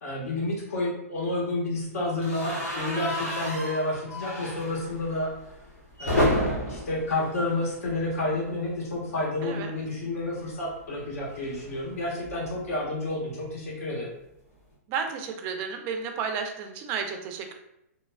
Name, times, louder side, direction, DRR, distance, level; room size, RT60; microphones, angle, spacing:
voice 1, 0.0-5.3 6.0-14.1, left 2 dB, 70° left, -3 dB, 1.0 m, -30 dB
sound 1, 2.2-8.3 8.6-8.8 9.0-9.1 10.4-12.7, left 1 dB, 85° left, 1.3 m, -32 dB
voice 2, 14.9-17.5, right 6 dB, 30° right, 4 dB, 0.3 m, -32 dB
3.1 x 2.2 x 2.2 m, 0.82 s
hypercardioid pair, 145°, 8 cm